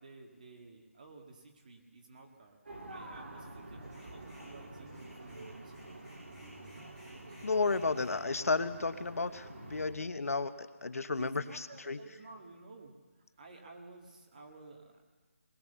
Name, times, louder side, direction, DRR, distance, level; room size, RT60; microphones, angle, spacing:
voice 1, 0.0-6.0 9.6-10.0 11.1-15.0, right 3 dB, 35° right, 1 dB, 2.1 m, -53 dB
sound 1, 2.7-9.9, right 2 dB, 55° right, 3.5 m, -48 dB
sound 2, 3.8-4.5 4.9-8.2, left 1 dB, 15° right, 6.9 m, -60 dB
voice 2, 7.4-11.4 11.9-12.0, left 3 dB, 75° left, 11 dB, 1.2 m, -32 dB
21.0 x 18.5 x 6.9 m, 1.3 s
hypercardioid pair, 175°, 8 cm